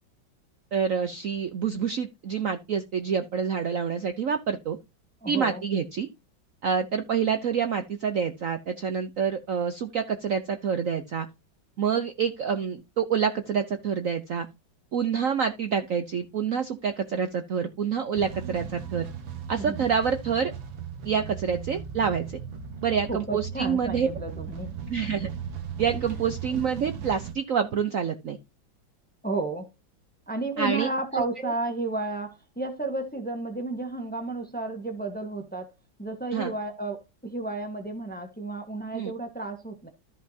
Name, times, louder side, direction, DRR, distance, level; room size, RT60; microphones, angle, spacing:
voice 1, 0.7-4.8 5.3-6.1 6.6-11.3 11.8-14.5 14.9-19.1 19.5-20.5 21.0-22.4 22.8-24.1 24.9-25.3 25.8-28.4 30.6-30.9 31.1-31.5 36.3-36.5 38.9-39.1, right 7 dB, 55° right, 1.0 m, -27 dB
voice 2, 5.2-5.6 19.5-19.9 23.1-24.7 25.9-26.0 29.2-29.7 30.3-35.7 36.0-39.9, right 2 dB, 5° left, 1.0 m, -32 dB
sound 1, 18.1-27.3, right 7 dB, 80° right, 2.0 m, -37 dB
13.5 x 5.6 x 2.8 m
omnidirectional pair, 2.1 m